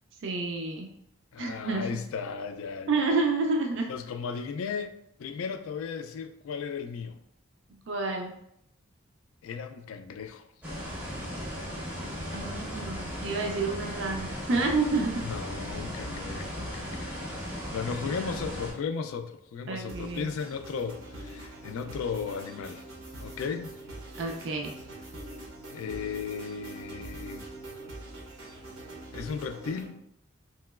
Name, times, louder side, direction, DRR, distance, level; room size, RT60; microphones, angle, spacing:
voice 1, 0.2-0.9 1.4-1.9 2.9-3.9 7.9-8.3 12.3-15.3 18.1-18.4 19.7-20.3 24.2-24.7, right 3 dB, 60° right, 2 dB, 0.4 m, -29 dB
voice 2, 1.3-3.1 3.9-7.2 9.4-10.5 15.2-17.1 17.7-22.8 23.2-23.7 25.7-27.5 29.1-30.0, left 6 dB, 80° left, 8 dB, 0.3 m, -35 dB
sound 1, 10.6-18.7, equal, 10° right, 0.5 m, -36 dB
sound 2, 19.9-29.9, right 2 dB, 80° right, 0.8 m, -44 dB
3.0 x 2.9 x 2.3 m, 0.76 s
head